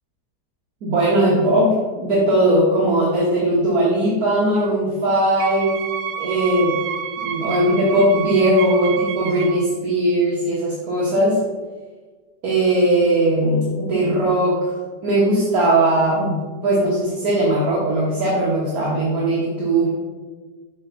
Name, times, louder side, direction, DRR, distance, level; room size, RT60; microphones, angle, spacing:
voice 1, 0.8-5.8 6.2-6.8 7.2-11.4 12.4-14.7 15.0-16.4 16.6-19.9, right 1 dB, 60° right, -6 dB, 1.8 m, -19 dB
Wind instrument woodwind instrument, 5.4-9.7, right 9 dB, 90° right, 1.3 m, -29 dB
8.0 x 3.4 x 5.6 m, 1.4 s
omnidirectional pair, 1.8 m